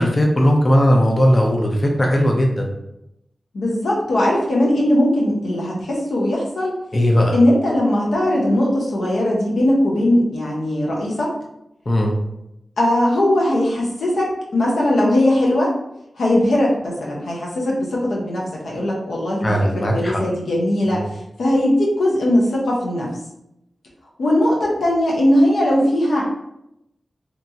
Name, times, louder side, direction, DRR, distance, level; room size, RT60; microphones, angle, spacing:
voice 1, 0.0-2.7 6.9-7.4 11.9-12.2 19.4-20.2 20.8-21.2, equal, 40° left, 1 dB, 0.5 m, -17 dB
voice 2, 3.5-6.7 7.3-11.3 12.8-15.7 16.2-21.0 21.4-23.1 24.2-26.3, left 1 dB, 90° left, -3 dB, 0.6 m, -19 dB
2.9 x 2.3 x 2.7 m, 0.84 s
cardioid pair, 45°, 0 cm